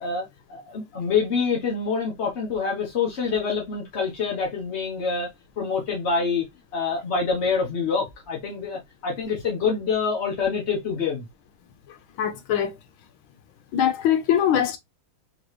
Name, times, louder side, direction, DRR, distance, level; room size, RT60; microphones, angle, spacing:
voice 1, 0.0-5.3 5.6-6.5 6.7-11.2, left 5 dB, 50° left, 0.8 m, -26 dB
voice 2, 12.2-12.7 13.7-14.8, left 9 dB, 80° left, 1.6 m, -22 dB
4.0 x 3.0 x 3.0 m
omnidirectional pair, 2.2 m